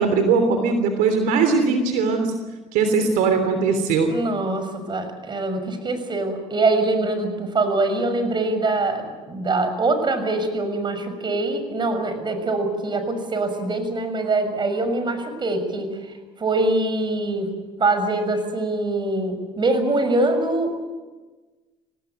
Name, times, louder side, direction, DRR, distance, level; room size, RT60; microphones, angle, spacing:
voice 1, 0.0-2.3 2.7-4.1, right 4 dB, 75° right, 7 dB, 3.2 m, -20 dB
voice 2, 4.1-17.5 17.8-20.8, right 2 dB, 35° right, 9 dB, 6.3 m, -23 dB
26.0 x 18.5 x 9.3 m, 1.3 s
supercardioid pair, 80°, 14 cm